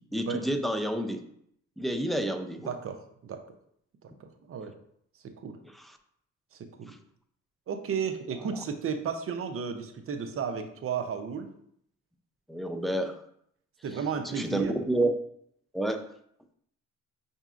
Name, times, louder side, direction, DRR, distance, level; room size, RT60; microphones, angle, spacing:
voice 1, 0.1-1.2 1.8-2.7 5.7-5.9 6.9-7.0 12.5-13.2 14.2-15.1 15.7-16.0, right 1 dB, ahead, 6 dB, 0.4 m, -29 dB
voice 2, 2.6-3.4 4.0-4.7 5.4-5.6 6.5-6.9 7.7-11.5 13.8-14.7, right 6 dB, 50° right, 7 dB, 0.6 m, -33 dB
5.7 x 2.7 x 2.4 m, 0.70 s
cardioid pair, 90°, 30 cm